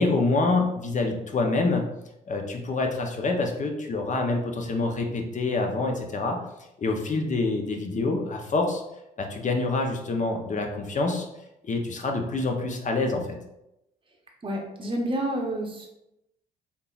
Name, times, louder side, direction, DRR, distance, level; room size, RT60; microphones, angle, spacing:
voice 1, 0.0-1.8 2.3-6.4 6.8-8.8 9.2-11.3 11.6-13.2, left 3 dB, 40° left, 3 dB, 0.7 m, -26 dB
voice 2, 14.4-15.9, right 1 dB, 25° right, 0 dB, 0.8 m, -29 dB
3.5 x 2.9 x 2.4 m, 0.87 s
hypercardioid pair, 50°, 20 cm